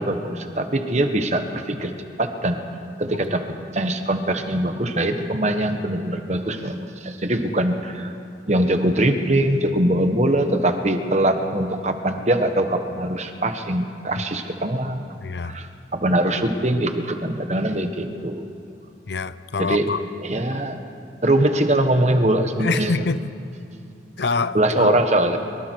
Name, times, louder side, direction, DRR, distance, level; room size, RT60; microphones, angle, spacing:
voice 1, 0.0-2.6 3.0-8.2 8.5-15.1 15.4-18.4 19.6-19.9 20.2-20.8 21.2-22.9 24.5-25.4, right 1 dB, 35° right, 7 dB, 1.3 m, -22 dB
voice 2, 15.2-15.6 19.1-20.0 22.6-23.3 24.2-25.0, left 4 dB, 65° left, 14 dB, 0.6 m, -25 dB
24.5 x 23.5 x 4.7 m, 2.6 s
head